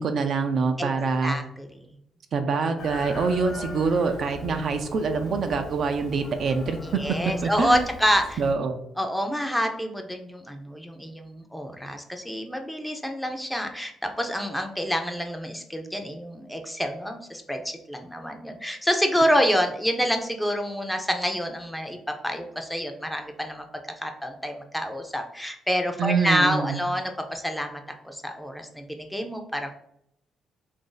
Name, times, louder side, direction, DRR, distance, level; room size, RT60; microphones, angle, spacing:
voice 1, 0.0-1.4 2.3-6.8 7.4-7.9 8.4-8.7 26.0-26.8, right 4 dB, 60° right, 6 dB, 0.4 m, -25 dB
voice 2, 1.2-1.7 3.5-3.6 6.8-8.4 9.0-23.7 24.0-29.7, equal, 5° left, 4 dB, 0.5 m, -27 dB
Chicken rooster, 2.8-8.5, left 3 dB, 65° left, 0.6 m, -41 dB
2.9 x 2.6 x 3.9 m, 0.75 s
cardioid pair, 90°, 0 cm